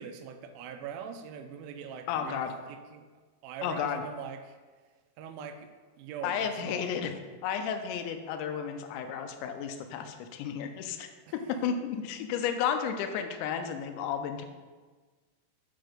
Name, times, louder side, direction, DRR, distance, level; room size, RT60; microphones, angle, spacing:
voice 1, 0.0-3.1 3.4-4.6 5.2-6.9 11.3-11.4, right 6 dB, 85° right, 7 dB, 3.2 m, -42 dB
voice 2, 2.1-2.5 3.6-4.0 6.2-7.1 7.4-11.1 11.5-14.5, left 7 dB, 80° left, 6 dB, 2.9 m, -32 dB
7.9 x 5.4 x 5.0 m, 1.4 s
omnidirectional pair, 5.5 m